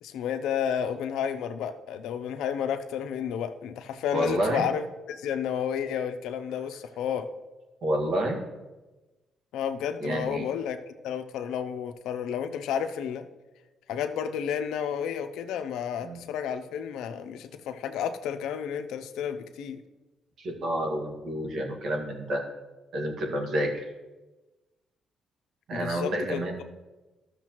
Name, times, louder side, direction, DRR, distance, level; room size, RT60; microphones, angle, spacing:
voice 1, 0.0-7.3 9.5-13.3 13.9-19.8 25.7-26.6, left 8 dB, 85° left, 9 dB, 0.6 m, -31 dB
voice 2, 4.1-4.7 7.8-8.4 10.0-10.4 16.0-16.3 20.4-22.4 22.9-23.8 25.7-26.6, right 1 dB, 65° right, 2 dB, 1.8 m, -29 dB
13.5 x 6.5 x 3.0 m, 1.1 s
cardioid pair, 90°, 0 cm